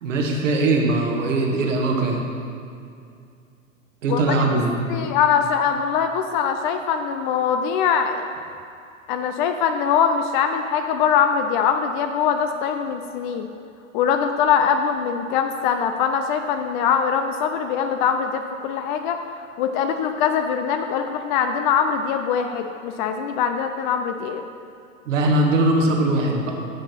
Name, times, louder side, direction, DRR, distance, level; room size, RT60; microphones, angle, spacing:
voice 1, 0.0-2.2 4.0-5.1 25.0-26.5, right 2 dB, 65° right, 1 dB, 1.7 m, -21 dB
voice 2, 4.1-4.6 4.9-8.3 9.1-13.5 13.9-19.2 19.6-24.4, left 7 dB, 40° left, 6 dB, 0.6 m, -22 dB
12.0 x 7.8 x 4.3 m, 2.4 s
figure-of-eight pair, 100°, 40 cm